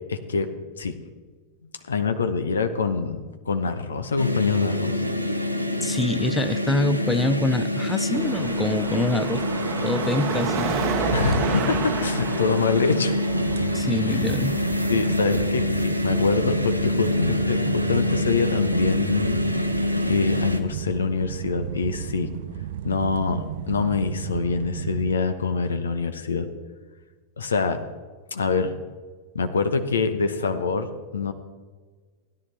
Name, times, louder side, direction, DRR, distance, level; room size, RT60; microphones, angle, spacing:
voice 1, 0.1-0.5 0.8-0.9 1.9-5.0 11.1-13.1 13.8-14.2 14.9-19.4 20.1-22.3 22.8-26.5 27.4-27.8 28.3-28.7 29.3-31.3, left 4 dB, 70° left, 9 dB, 0.9 m, -25 dB
sound 1, 4.2-20.6, left 1 dB, 90° right, 0.9 m, -26 dB
voice 2, 5.8-9.4 9.8-10.9 13.7-14.6, left 2 dB, 10° left, 9 dB, 0.5 m, -25 dB
Car passing by / Traffic noise roadway noise / Engine, 8.1-15.5, right 6 dB, 40° right, 1.0 m, -31 dB
sound 2, 13.3-25.1, right 10 dB, 55° right, 0.4 m, -33 dB
16.5 x 10.5 x 3.3 m, 1.4 s
figure-of-eight pair, 90°, 0 cm